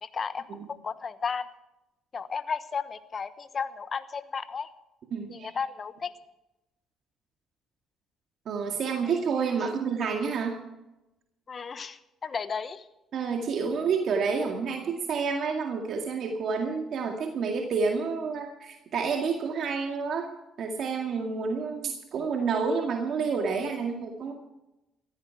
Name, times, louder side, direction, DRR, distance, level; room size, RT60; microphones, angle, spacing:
voice 1, 0.0-1.5 2.1-4.7 5.3-6.1 11.5-12.8, left 5 dB, 40° left, 13 dB, 1.1 m, -34 dB
voice 2, 5.1-5.5 8.5-10.6 13.1-20.3 20.6-24.3, right 5 dB, 65° right, 2 dB, 2.0 m, -29 dB
15.5 x 14.5 x 4.7 m, 0.95 s
supercardioid pair, 80°, 0 cm